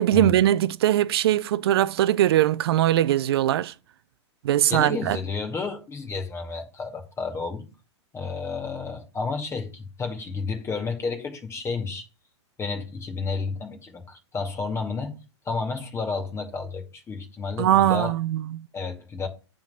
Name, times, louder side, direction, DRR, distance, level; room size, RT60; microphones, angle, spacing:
voice 1, 0.0-3.7 4.4-5.2 17.6-18.7, right 12 dB, 55° right, 0.6 m, -21 dB
voice 2, 4.7-7.7 8.1-12.1 12.6-15.2 15.5-18.1 18.7-19.3, left 4 dB, 15° left, 2.1 m, -31 dB
10.0 x 3.9 x 7.0 m
figure-of-eight pair, 110°, 15 cm